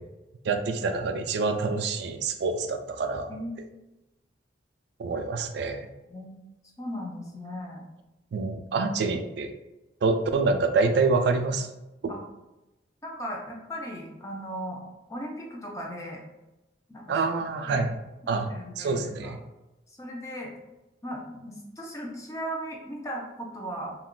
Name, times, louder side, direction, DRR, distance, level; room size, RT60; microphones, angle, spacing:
voice 1, 0.4-3.4 5.0-5.9 8.3-9.5 10.0-11.7 12.0-12.1 17.1-17.9 18.3-18.5 18.8-19.4, right 4 dB, 60° right, 7 dB, 0.3 m, -26 dB
voice 2, 6.8-7.8 12.1-12.2 13.0-14.8 15.1-16.2 16.9-17.2 17.7-17.9 18.2-19.3 19.9-20.5 21.0-24.0, equal, 15° left, -1 dB, 0.5 m, -37 dB
2.3 x 2.2 x 3.6 m, 0.99 s
head